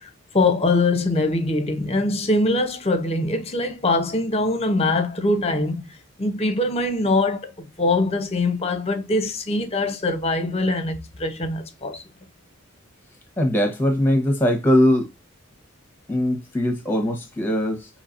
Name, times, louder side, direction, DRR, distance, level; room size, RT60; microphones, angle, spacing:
voice 1, 0.0-5.8 6.2-12.0, left 2 dB, 30° left, 0.8 m, -23 dB
voice 2, 13.4-15.1 16.1-17.9, left 1 dB, 10° left, 1.0 m, -20 dB
5.7 x 3.1 x 2.5 m
head